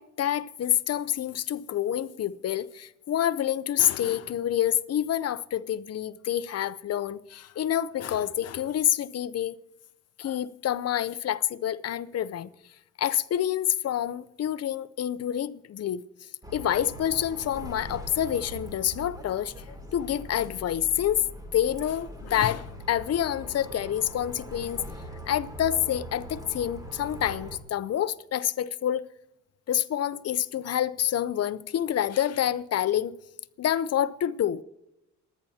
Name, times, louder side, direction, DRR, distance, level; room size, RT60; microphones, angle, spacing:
voice 1, 0.0-9.5 10.2-12.5 13.0-16.0 16.5-19.5 19.9-21.2 21.5-24.8 25.3-29.0 29.7-33.1 33.6-34.6, left 10 dB, 55° left, 0.7 m, -27 dB
Bus, 16.4-27.6, right 1 dB, 10° right, 2.7 m, -41 dB
27.0 x 10.5 x 2.8 m
cardioid pair, 90°, 30 cm